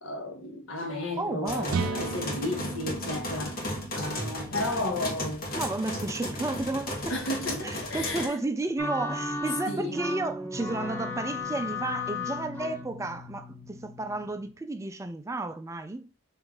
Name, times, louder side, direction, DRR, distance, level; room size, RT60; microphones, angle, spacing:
voice 1, 0.0-3.6 3.9-5.5 7.1-8.4 9.7-10.0, left 2 dB, 65° left, 1.2 m, -33 dB
voice 2, 1.2-1.9 4.2-4.3 5.5-7.4 7.6-16.1, right 2 dB, 15° right, 0.3 m, -32 dB
sound 1, 1.5-8.3, left 1 dB, 45° left, 1.2 m, -35 dB
sound 2, 1.7-5.5, right 4 dB, 80° right, 0.4 m, -36 dB
sound 3, 8.8-14.5, left 3 dB, 10° left, 0.9 m, -35 dB
4.7 x 2.6 x 3.7 m
head